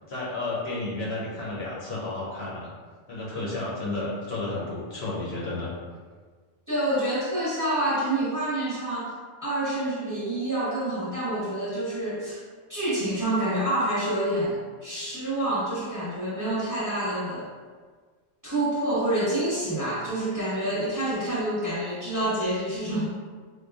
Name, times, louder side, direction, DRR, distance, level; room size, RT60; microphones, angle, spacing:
voice 1, 0.1-2.7 3.1-5.7, left 2 dB, 60° left, -6 dB, 0.8 m, -32 dB
voice 2, 6.7-9.1 9.4-12.4 12.7-17.5 18.4-23.1, right 1 dB, 20° right, -9 dB, 0.8 m, -27 dB
4.6 x 2.2 x 2.3 m, 1.5 s
omnidirectional pair, 1.3 m